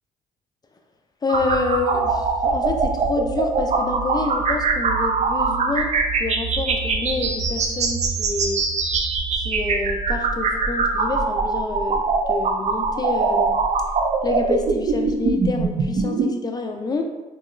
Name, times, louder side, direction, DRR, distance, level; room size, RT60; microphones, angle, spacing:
voice 1, 1.2-8.7 9.3-13.6 14.2-17.0, left 3 dB, 25° left, 4 dB, 0.4 m, -28 dB
sound 1, 1.3-16.3, right 4 dB, 45° right, 0.4 m, -22 dB
3.0 x 2.8 x 2.5 m, 1.1 s
cardioid pair, 75°, 16 cm